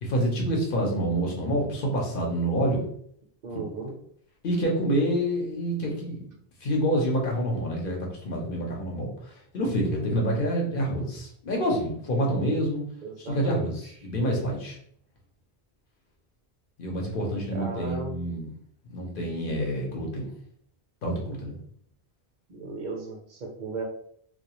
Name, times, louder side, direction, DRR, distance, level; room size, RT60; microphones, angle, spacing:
voice 1, 0.0-2.9 4.4-6.3 6.6-9.1 9.5-12.8 13.2-14.8 16.8-18.5 18.9-20.3 21.0-21.6, equal, 60° left, -1 dB, 0.8 m, -27 dB
voice 2, 3.4-3.9 13.0-13.7 17.5-18.2 22.5-23.8, right 3 dB, 55° right, 0 dB, 0.6 m, -36 dB
2.3 x 2.3 x 2.9 m, 0.64 s
omnidirectional pair, 1.1 m